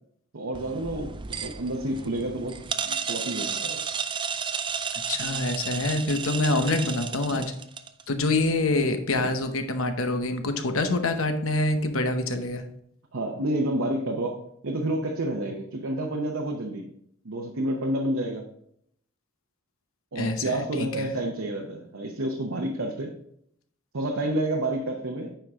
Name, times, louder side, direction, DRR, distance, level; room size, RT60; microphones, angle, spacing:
voice 1, 0.3-3.9 7.3-7.5 9.2-9.3 13.1-16.9 17.2-18.4 20.1-23.1 23.9-25.3, right 1 dB, 70° right, 1 dB, 0.9 m, -29 dB
sound 1, 0.5-8.0, right 6 dB, 25° right, 0.4 m, -33 dB
voice 2, 5.1-7.5 8.1-12.6 20.2-21.1, left 2 dB, 70° left, 7 dB, 0.9 m, -26 dB
9.1 x 5.2 x 3.6 m, 0.70 s
head